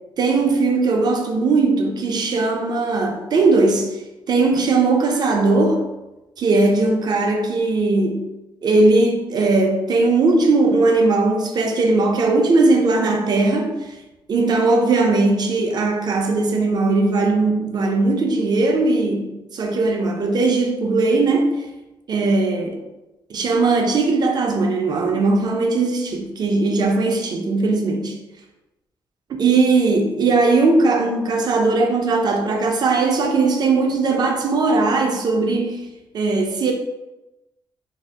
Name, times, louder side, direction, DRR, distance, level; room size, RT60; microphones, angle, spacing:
voice 1, 0.2-3.9 4.3-5.8 6.4-8.3 8.6-13.9 14.3-21.7 22.1-22.7 23.3-28.2 29.3-35.9 36.1-36.7, right 3 dB, 50° right, 0.5 m, -19 dB
2.7 x 2.0 x 3.4 m
cardioid pair, 110°, 9 cm